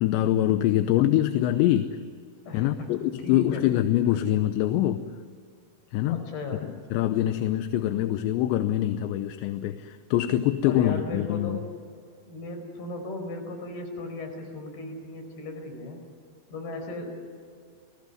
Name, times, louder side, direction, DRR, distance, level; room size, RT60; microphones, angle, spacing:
voice 1, 0.0-2.0 2.5-5.0 5.9-6.2 6.9-11.6, left 12 dB, 80° left, 9 dB, 3.1 m, -24 dB
voice 2, 3.2-3.6 4.1-4.3 6.1-6.7 10.6-11.6 12.3-16.0 16.5-17.3, left 2 dB, 55° left, 4 dB, 6.6 m, -36 dB
30.0 x 19.5 x 9.5 m, 2.2 s
omnidirectional pair, 5.2 m